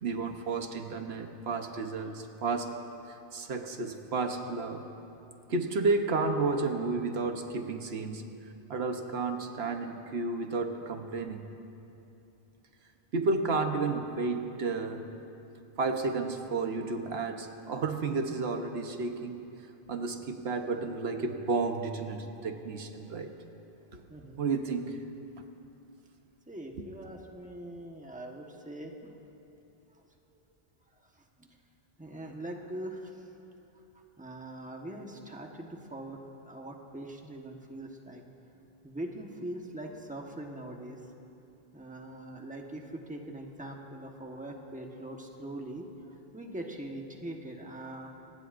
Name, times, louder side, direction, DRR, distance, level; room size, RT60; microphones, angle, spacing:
voice 1, 0.0-2.7 3.1-4.9 5.5-8.3 8.7-11.5 13.1-15.0 15.8-19.5 19.9-23.3 23.9-24.0 24.4-25.0 26.8-26.9, right 3 dB, 85° right, 5 dB, 1.2 m, -32 dB
voice 2, 24.1-24.4 26.5-29.2 30.3-30.4 31.4-31.5 32.0-33.2 34.2-38.2 38.8-41.0 41.7-48.1, right 1 dB, 10° right, 1 dB, 1.2 m, -42 dB
26.0 x 19.5 x 2.6 m, 2.8 s
omnidirectional pair, 1.0 m